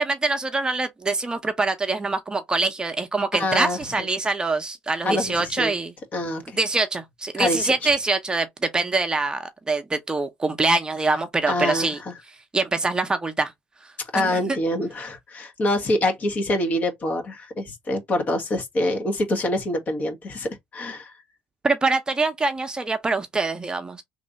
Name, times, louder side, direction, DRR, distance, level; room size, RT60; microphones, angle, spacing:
voice 1, 0.0-5.9 6.6-12.0 12.5-13.5 14.1-14.6 21.6-24.0, right 3 dB, 20° right, 0.8 m, -24 dB
voice 2, 3.3-4.1 5.0-5.7 6.1-6.6 7.4-7.9 11.5-12.1 14.1-21.1, left 1 dB, 45° left, 1.3 m, -26 dB
3.2 x 2.6 x 4.0 m
supercardioid pair, 75°, 4 cm